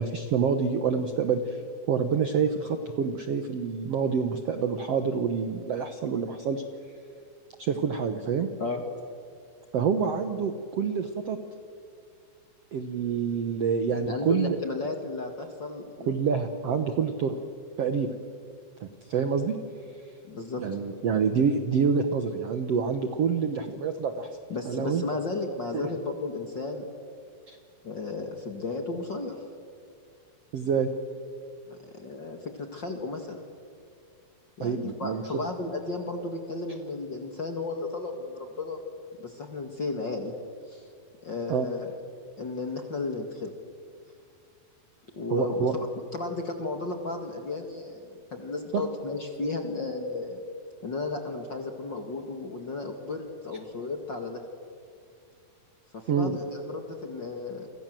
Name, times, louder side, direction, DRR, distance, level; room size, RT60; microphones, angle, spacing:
voice 1, 0.0-1.6 1.9-6.6 7.6-8.5 9.7-11.4 12.7-14.6 16.1-17.4 17.8-18.1 18.8-19.6 20.6-24.3 24.6-25.0 25.7-25.9 27.5-27.6 30.5-30.9 34.6-35.4 41.5-41.7 45.3-45.7 48.7-48.8 56.1-56.4, right 6 dB, 65° right, 8 dB, 1.6 m, -27 dB
voice 2, 14.1-16.2 20.3-20.6 24.5-26.9 27.8-29.4 31.7-33.4 34.6-38.8 39.2-40.3 40.7-40.8 41.2-41.9 42.4-43.5 45.1-45.9 46.1-50.4 50.8-54.4 55.9-57.7, left 3 dB, 40° left, 5 dB, 1.9 m, -34 dB
29.5 x 25.5 x 7.7 m, 2.3 s
omnidirectional pair, 4.4 m